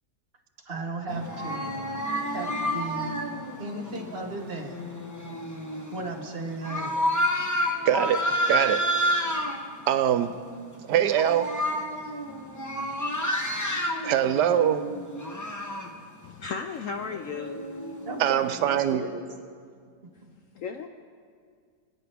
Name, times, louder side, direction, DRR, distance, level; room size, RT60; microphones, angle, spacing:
voice 1, 0.6-1.9 2.3-3.1 3.6-4.8 5.9-7.0 18.0-19.2, right 2 dB, 40° right, 3 dB, 1.4 m, -35 dB
sound 1, 1.1-9.6 10.2-10.5 10.8-15.9 16.9-18.8, equal, 15° left, 0.6 m, -30 dB
voice 2, 7.8-8.2 8.5-8.8 9.9-10.3 10.9-11.5 14.0-14.8 18.2-19.0, right 10 dB, 80° right, 10 dB, 1.2 m, -23 dB
voice 3, 16.2-17.6 20.5-20.9, left 5 dB, 70° left, 6 dB, 0.8 m, -34 dB
25.5 x 9.3 x 3.4 m, 2.1 s
omnidirectional pair, 1.8 m